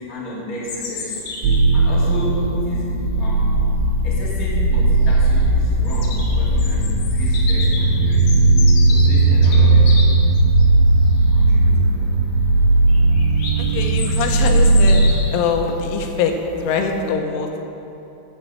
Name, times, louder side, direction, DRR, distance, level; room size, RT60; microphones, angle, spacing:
voice 1, 0.0-1.3 1.7-2.9 3.2-3.5 4.0-8.5 8.8-10.4 11.3-12.1, left 1 dB, 30° left, -7 dB, 1.8 m, -33 dB
Bird vocalization bird call bird song, 0.6-17.1, left 3 dB, 70° left, 2.7 m, -35 dB
sound 1, 1.4-15.1, right 2 dB, 85° right, 3.3 m, -16 dB
voice 2, 13.6-15.0 15.3-17.6, left 5 dB, 85° left, 3 dB, 3.3 m, -23 dB
9.3 x 7.3 x 7.6 m, 3.0 s
omnidirectional pair, 5.5 m